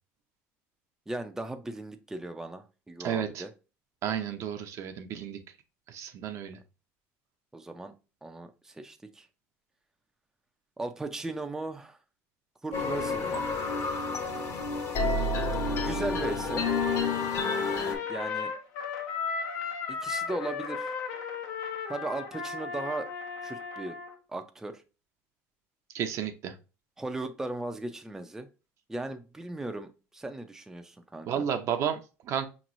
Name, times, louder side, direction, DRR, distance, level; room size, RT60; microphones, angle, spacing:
voice 1, 1.1-3.5 7.5-7.9 8.2-9.3 10.8-12.0 12.6-13.4 15.8-16.7 18.1-18.5 19.9-20.9 21.9-23.1 23.4-24.0 24.3-24.8 27.0-28.5 28.9-31.4, right 2 dB, 10° right, 0.4 m, -37 dB
voice 2, 3.0-3.4 4.0-5.4 5.9-6.6 25.9-26.5 31.2-32.5, right 8 dB, 55° right, 0.6 m, -32 dB
sound 1, 12.7-17.9, left 3 dB, 45° left, 1.0 m, -29 dB
Trumpet, 16.6-24.2, left 5 dB, 75° left, 0.9 m, -35 dB
5.2 x 3.0 x 2.5 m
supercardioid pair, 110°, 6 cm